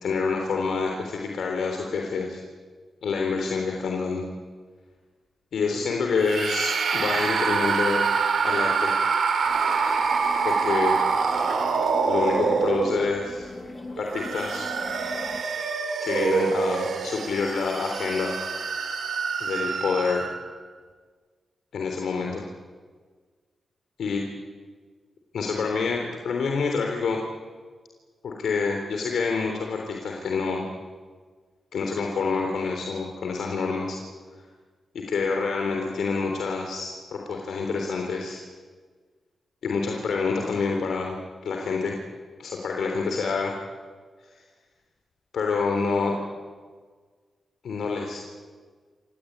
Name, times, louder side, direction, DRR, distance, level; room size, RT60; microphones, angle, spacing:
voice 1, 0.0-2.4 3.0-4.2 5.5-8.0 8.4-8.9 10.4-11.0 12.1-13.5 14.0-14.7 16.0-18.3 19.4-20.2 21.7-22.5 24.0-24.2 25.3-27.2 28.2-30.7 31.7-34.0 34.9-38.4 39.6-41.2 41.4-42.0 42.4-43.5 45.3-46.2 47.6-48.2, left 4 dB, 80° left, 2 dB, 3.6 m, -27 dB
sound 1, 6.2-13.3 14.0-20.5, right 5 dB, 75° right, 3.3 m, -25 dB
sound 2, 9.4-15.4, left 2 dB, 35° left, 6.5 m, -38 dB
27.5 x 17.5 x 9.5 m, 1.5 s
supercardioid pair, 40°, 0 cm